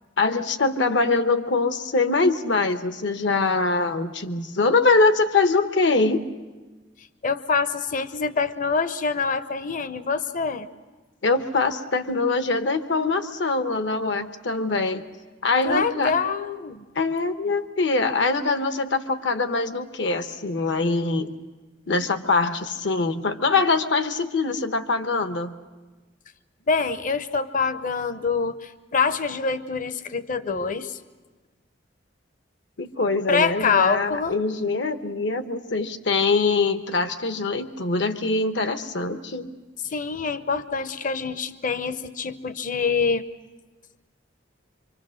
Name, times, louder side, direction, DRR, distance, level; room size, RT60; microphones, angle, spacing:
voice 1, 0.2-6.3 11.2-15.0 15.4-16.1 16.9-21.4 21.9-25.5 32.8-39.6, left 3 dB, 70° left, 9 dB, 1.0 m, -23 dB
voice 2, 7.2-10.7 15.6-16.8 26.7-31.0 33.3-34.4 39.9-43.2, left 5 dB, 45° left, 12 dB, 0.8 m, -25 dB
25.0 x 25.0 x 6.4 m, 1.3 s
head